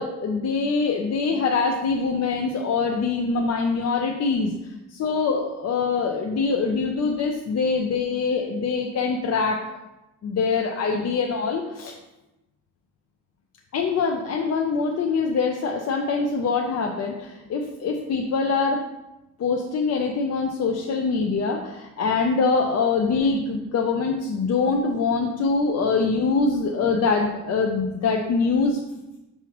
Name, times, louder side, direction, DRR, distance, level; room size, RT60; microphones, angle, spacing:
voice 1, 0.0-4.5 5.0-9.6 10.2-11.9 13.7-18.8 19.4-28.8, left 4 dB, 45° left, 2 dB, 0.5 m, -24 dB
5.9 x 5.5 x 2.9 m, 0.98 s
cardioid pair, 160°, 35 cm